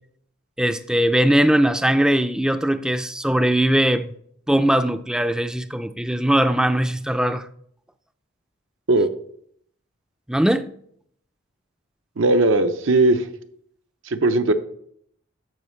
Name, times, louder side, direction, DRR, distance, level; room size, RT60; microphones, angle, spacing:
voice 1, 0.6-4.1 4.5-7.5 10.3-10.7, right 1 dB, 5° right, 0.3 m, -20 dB
voice 2, 12.2-13.3 14.1-14.5, right 2 dB, 75° right, 0.7 m, -18 dB
12.5 x 4.9 x 3.2 m
head